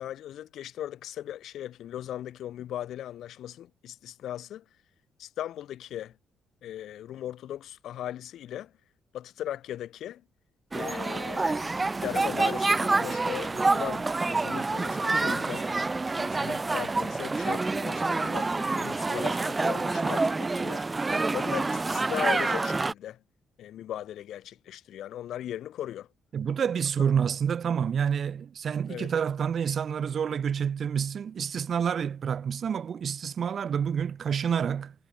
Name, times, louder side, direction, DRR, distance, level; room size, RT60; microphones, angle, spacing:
voice 1, 0.0-4.6 5.2-6.2 6.6-8.7 9.1-10.2 10.7-15.7 16.2-20.8 21.3-23.2 23.6-26.1 28.9-29.1, left 11 dB, 75° left, 3.0 m, -38 dB
sound 1, 10.7-22.9, right 3 dB, 25° right, 2.7 m, -27 dB
voice 2, 26.3-34.9, right 7 dB, 55° right, 3.2 m, -28 dB
cardioid pair, 90°, 0 cm